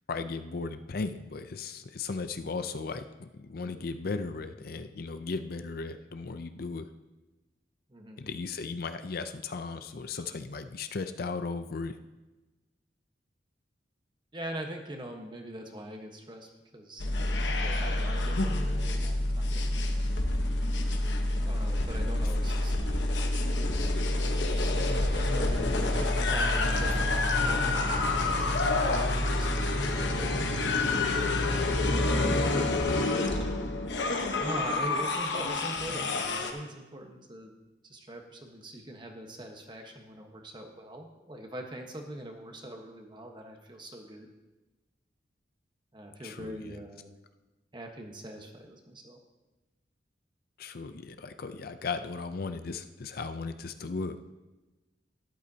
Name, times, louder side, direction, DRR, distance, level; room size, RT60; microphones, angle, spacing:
voice 1, 0.1-6.9 8.2-12.0 46.2-46.8 50.6-54.2, left 4 dB, 55° left, 9 dB, 0.5 m, -36 dB
voice 2, 7.9-8.2 14.3-17.0 17.6-19.6 21.4-23.7 24.9-29.7 30.0-30.3 31.8-32.4 34.4-37.5 37.8-44.3 45.9-47.1 47.7-49.2, right 1 dB, 25° right, 3 dB, 1.2 m, -43 dB
sound 1, 17.0-36.5, left 2 dB, 80° left, 1.1 m, -28 dB
sound 2, 25.5-32.5, left 1 dB, 10° left, 0.7 m, -41 dB
12.5 x 11.5 x 2.8 m, 1.1 s
head